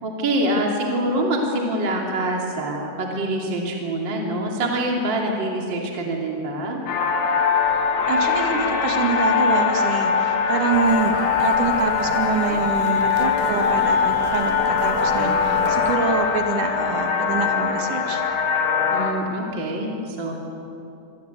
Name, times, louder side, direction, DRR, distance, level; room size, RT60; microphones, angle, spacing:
voice 1, 0.0-6.8 18.9-20.3, right 1 dB, 30° right, -1 dB, 2.7 m, -25 dB
sound 1, 6.9-19.1, left 6 dB, 80° left, 5.2 m, -22 dB
voice 2, 8.1-11.1 11.4-18.2, right 4 dB, 55° right, 4 dB, 3.0 m, -25 dB
sound 2, 10.7-16.0, right 9 dB, 75° right, 3.0 m, -35 dB
26.0 x 25.5 x 8.2 m, 2.9 s
omnidirectional pair, 5.1 m